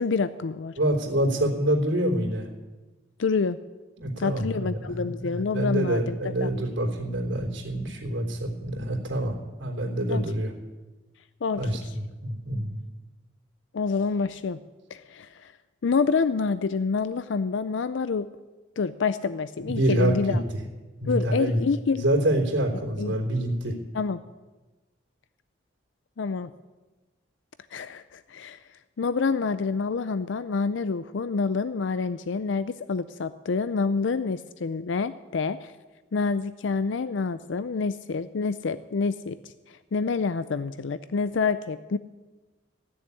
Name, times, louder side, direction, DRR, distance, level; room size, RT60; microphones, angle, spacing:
voice 1, 0.0-0.7 3.2-3.6 4.2-6.2 6.4-6.5 10.1-10.2 11.4-11.6 13.7-14.6 14.9-15.5 15.8-18.3 18.8-20.4 21.1-22.0 23.0-23.1 23.9-24.2 26.2-26.5 27.7-28.6 29.0-35.7 36.1-42.0, left 4 dB, 85° left, 14 dB, 0.5 m, -27 dB
voice 2, 0.8-2.5 4.0-10.5 11.5-12.8 19.6-20.6 21.0-21.6 22.0-23.8, right 1 dB, 80° right, 0 dB, 3.5 m, -26 dB
15.5 x 7.1 x 9.9 m, 1.2 s
head